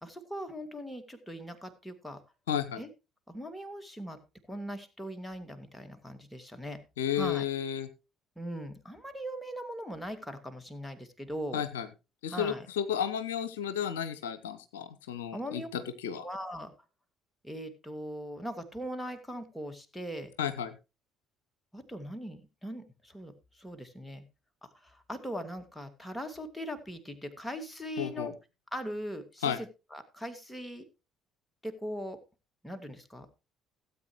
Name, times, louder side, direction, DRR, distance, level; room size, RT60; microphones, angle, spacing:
voice 1, 0.0-2.2 2.8-2.9 3.3-4.2 4.5-6.8 7.1-7.5 8.4-11.6 12.3-12.6 15.3-15.7 16.2-16.7 17.4-20.3 21.7-24.2 24.7-28.3 28.7-30.8 31.6-32.2 32.6-33.3, equal, 5° left, 7 dB, 2.1 m, -40 dB
voice 2, 2.5-2.8 7.0-7.9 11.5-11.9 12.2-16.2 20.4-20.7 28.0-28.3 29.4-29.6, left 9 dB, 75° left, 12 dB, 0.8 m, -32 dB
17.0 x 8.4 x 3.1 m, 0.29 s
figure-of-eight pair, 50°, 0 cm